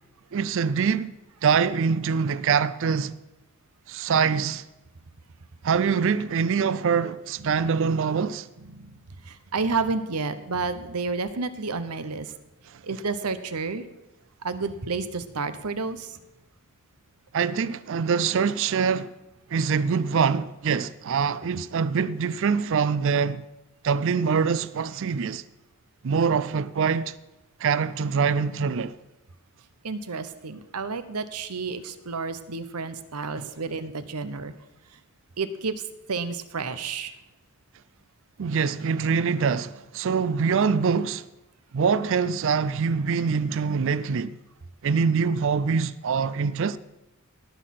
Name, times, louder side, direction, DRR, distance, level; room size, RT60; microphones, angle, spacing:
voice 1, 0.3-1.1 1.4-3.1 3.9-4.6 5.6-8.5 12.7-12.8 17.3-19.1 19.5-23.4 23.8-25.4 26.0-27.1 27.6-28.9 33.4-33.5 38.4-41.2 41.7-44.4 44.8-46.8, right 6 dB, 60° right, 0.4 m, -24 dB
voice 2, 8.7-9.0 9.2-12.3 12.8-13.8 14.4-16.2 29.8-34.5 35.4-35.8 36.1-37.1, right 4 dB, 90° right, 0.9 m, -30 dB
18.5 x 6.5 x 5.9 m
head